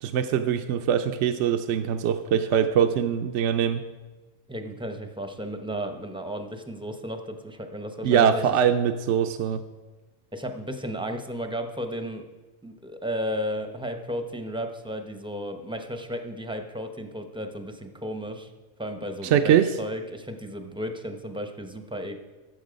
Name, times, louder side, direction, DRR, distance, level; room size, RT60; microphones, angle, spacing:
voice 1, 0.0-3.8 8.0-9.6 19.2-19.7, right 8 dB, 70° right, 7 dB, 0.9 m, -22 dB
voice 2, 4.5-8.6 10.3-12.3 12.6-18.5 18.8-22.2, equal, 5° right, 6 dB, 0.6 m, -34 dB
14.0 x 7.2 x 5.1 m, 1.2 s
omnidirectional pair, 1.3 m